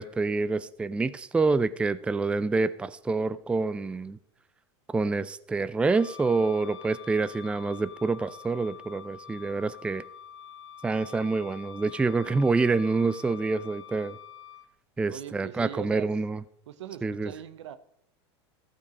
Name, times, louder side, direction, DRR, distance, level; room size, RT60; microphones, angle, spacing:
voice 1, 0.0-4.2 4.9-10.0 10.8-14.2 15.0-16.4 17.0-17.3, right 3 dB, 5° right, 0.3 m, -27 dB
Wind instrument woodwind instrument, 5.9-14.7, left 9 dB, 75° left, 0.9 m, -46 dB
voice 2, 15.0-16.1 16.7-17.8, right 11 dB, 80° right, 0.8 m, -41 dB
14.5 x 5.3 x 5.1 m
hypercardioid pair, 100°, 15 cm